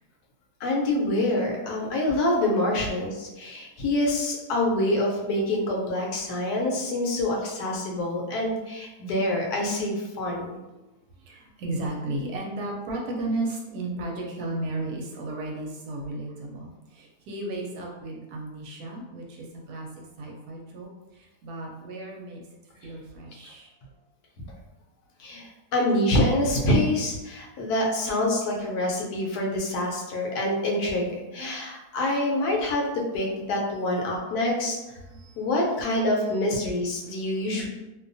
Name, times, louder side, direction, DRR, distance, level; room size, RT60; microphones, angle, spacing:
voice 1, 0.6-10.5 23.4-23.5 25.2-35.0 35.4-37.7, left 1 dB, 75° left, -1 dB, 1.1 m, -26 dB
voice 2, 11.2-19.9 20.2-22.4 22.8-23.7 33.7-34.1 35.0-36.4 37.0-37.5, right 2 dB, 75° right, -1 dB, 1.0 m, -35 dB
2.6 x 2.2 x 2.5 m, 1.0 s
omnidirectional pair, 1.7 m